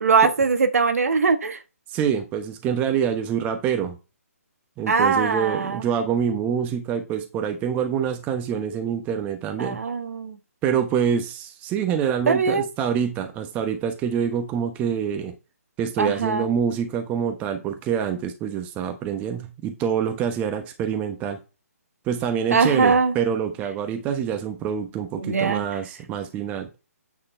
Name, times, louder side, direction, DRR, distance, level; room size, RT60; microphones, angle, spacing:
voice 1, 0.0-1.6 4.9-5.8 9.6-10.4 12.3-12.7 16.0-16.5 22.5-23.1 25.2-25.6, right 5 dB, 65° right, 1.3 m, -21 dB
voice 2, 1.9-4.0 4.8-9.8 10.6-15.3 15.8-21.4 22.1-26.7, right 8 dB, 20° right, 1.0 m, -26 dB
8.8 x 4.3 x 4.3 m
figure-of-eight pair, 145°, 8 cm